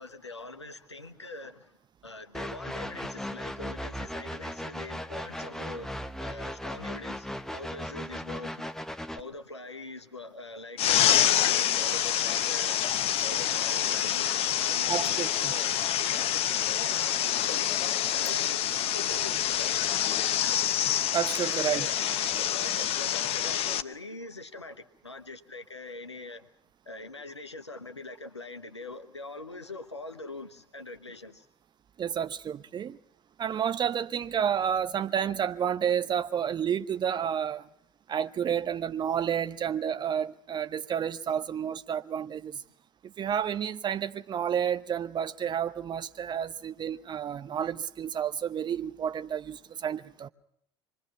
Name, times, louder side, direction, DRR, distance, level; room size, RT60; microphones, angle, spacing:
voice 1, 0.0-1.7 2.0-5.9 6.2-7.3 7.5-8.7 9.2-12.8 13.2-15.7 16.1-17.7 18.1-19.8 21.4-26.5 26.9-31.4, left 2 dB, 90° left, 1.1 m, -43 dB
sound 1, 2.3-9.2, equal, 5° left, 1.0 m, -37 dB
sound 2, 10.8-23.8, left 11 dB, 45° left, 0.9 m, -27 dB
voice 2, 14.9-15.5 21.1-21.9 32.0-33.0 33.4-37.7 38.1-42.6 43.0-50.3, right 8 dB, 30° right, 0.9 m, -30 dB
26.0 x 20.5 x 5.8 m
figure-of-eight pair, 70°, 14 cm